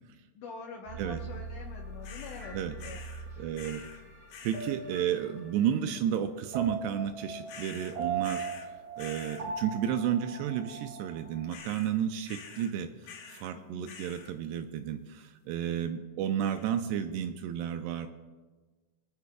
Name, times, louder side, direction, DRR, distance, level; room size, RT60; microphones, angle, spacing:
voice 1, 0.4-2.5 2.8-3.0 3.3-3.5 13.5-13.9, left 4 dB, 90° left, 1 dB, 1.7 m, -45 dB
sound 1, 0.9-11.6, right 5 dB, 50° right, 5.1 m, -40 dB
sound 2, 2.0-2.5 2.8-3.2 3.5-4.0 4.3-4.8 7.5-8.7 9.0-9.5 11.5-11.9 12.3-12.7 13.0-13.5 13.8-14.3 16.4-16.8, left 6 dB, 70° left, 2.1 m, -47 dB
voice 2, 3.4-3.8 4.4-8.5 9.0-18.1, right 9 dB, 85° right, 8 dB, 2.5 m, -32 dB
24.5 x 9.4 x 2.3 m, 1.3 s
omnidirectional pair, 5.1 m